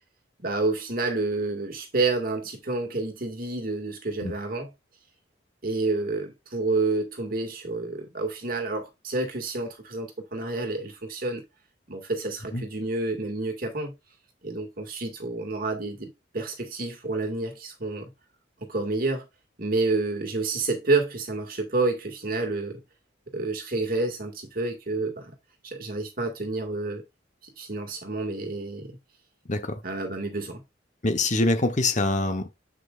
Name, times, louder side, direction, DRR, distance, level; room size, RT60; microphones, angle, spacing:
voice 1, 0.4-4.7 5.6-11.4 11.9-13.9 14.4-18.1 18.6-19.2 19.6-22.8 23.3-25.3 25.6-27.0 27.6-29.0 29.8-30.6, right 3 dB, 50° right, 2.2 m, -29 dB
voice 2, 29.5-29.8 31.0-32.5, left 2 dB, 40° left, 1.1 m, -24 dB
8.0 x 6.5 x 2.5 m
head